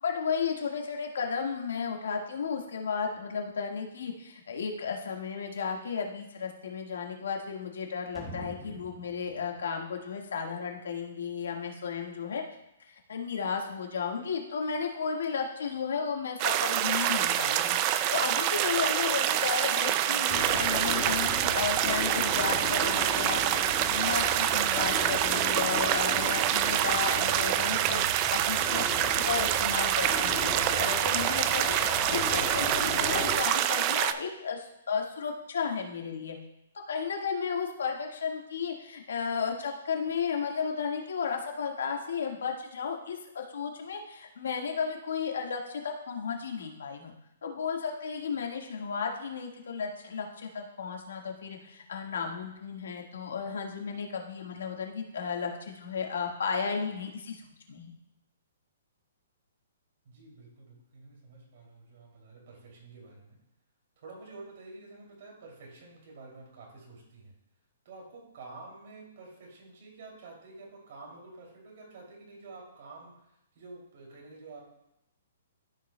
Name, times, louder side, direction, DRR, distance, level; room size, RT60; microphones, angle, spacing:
voice 1, 0.0-12.4 12.9-23.6 23.9-36.3 36.9-47.1 47.4-57.4 57.7-57.9, left 6 dB, 80° left, 1 dB, 1.6 m, -34 dB
sound 1, 8.1-11.0 11.3-11.4, right 1 dB, 10° right, 1.1 m, -46 dB
sound 2, 16.4-34.1, right 11 dB, 25° right, 0.3 m, -26 dB
sound 3, 20.3-33.4, left 3 dB, 20° left, 1.6 m, -37 dB
voice 2, 60.0-63.4 64.0-67.3 67.8-73.1 73.5-74.6, right 3 dB, 50° right, -2 dB, 2.7 m, -49 dB
13.5 x 5.4 x 2.2 m, 0.85 s
hypercardioid pair, 165°, 0 cm